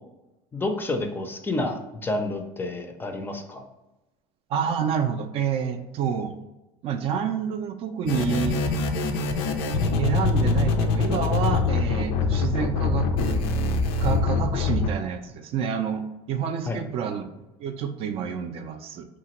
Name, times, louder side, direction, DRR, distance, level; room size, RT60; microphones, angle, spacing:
voice 1, 0.5-3.6 16.7-16.8, left 2 dB, 15° left, 5 dB, 0.4 m, -29 dB
voice 2, 4.5-6.3 6.8-8.6 10.0-13.5 14.0-19.1, right 7 dB, 50° right, 7 dB, 0.4 m, -28 dB
sound 1, 8.0-14.9, left 3 dB, 75° left, 0.4 m, -24 dB
2.9 x 2.5 x 2.9 m, 0.98 s
supercardioid pair, 105°, 13 cm